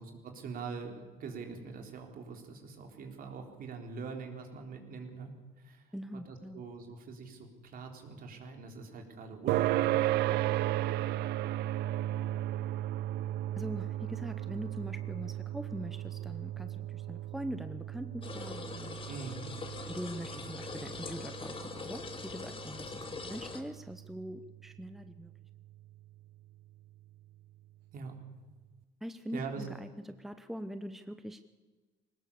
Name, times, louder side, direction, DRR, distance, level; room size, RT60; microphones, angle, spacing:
voice 1, 0.0-10.1 19.1-19.5 27.9-28.2 29.3-29.7, right 5 dB, 60° right, 3 dB, 3.7 m, -43 dB
voice 2, 5.9-6.6 13.6-19.0 19.9-25.3 29.0-31.4, equal, ahead, 9 dB, 0.8 m, -42 dB
sound 1, 9.5-24.4, right 14 dB, 80° right, 0.5 m, -35 dB
sound 2, 18.2-23.6, left 4 dB, 30° left, 2.4 m, -43 dB
21.5 x 19.0 x 7.0 m, 1.3 s
cardioid pair, 110°, 17 cm